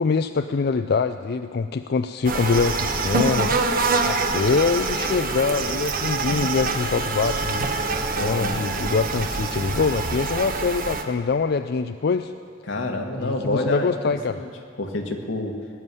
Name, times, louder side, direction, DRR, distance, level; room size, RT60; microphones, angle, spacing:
voice 1, 0.0-3.5 4.1-7.7 8.2-12.3 13.2-14.4, left 4 dB, 55° left, 9 dB, 0.4 m, -24 dB
sound 1, 2.2-11.0, right 3 dB, 50° right, 1.1 m, -25 dB
voice 2, 8.2-8.7 12.6-13.9 14.3-14.5 14.8-15.5, left 1 dB, 90° left, 3 dB, 1.8 m, -28 dB
19.0 x 7.3 x 9.6 m, 2.2 s
head